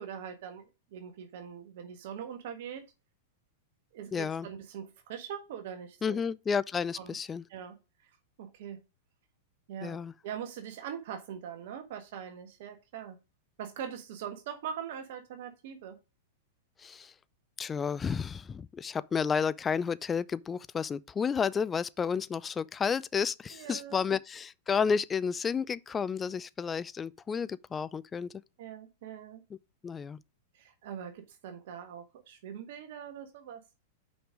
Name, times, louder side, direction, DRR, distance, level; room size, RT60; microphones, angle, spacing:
voice 1, 0.0-2.8 3.9-6.2 7.0-7.1 7.5-8.1 8.4-8.8 9.7-13.2 13.6-16.0 23.5-24.0 28.6-29.4 30.5-33.6, right 8 dB, 60° right, 1.3 m, -42 dB
voice 2, 4.1-4.5 6.0-7.4 9.8-10.1 16.8-17.1 17.6-28.3 29.8-30.2, left 6 dB, 20° left, 0.4 m, -31 dB
6.0 x 5.2 x 4.9 m
hypercardioid pair, 105°, 0 cm